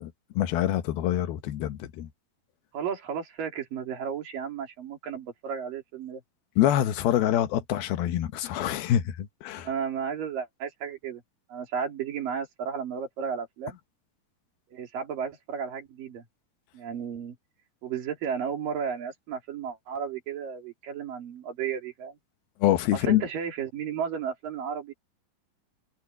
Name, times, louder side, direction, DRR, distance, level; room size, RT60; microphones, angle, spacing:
voice 1, 0.0-2.1 6.6-9.7 22.6-23.2, left 12 dB, 85° left, 3.1 m, -25 dB
voice 2, 2.7-6.2 9.6-11.2 11.5-13.8 14.7-16.2 16.7-17.4 17.8-22.2 22.9-24.9, right 7 dB, 65° right, 4.5 m, -33 dB
omnidirectional pair, 4.2 m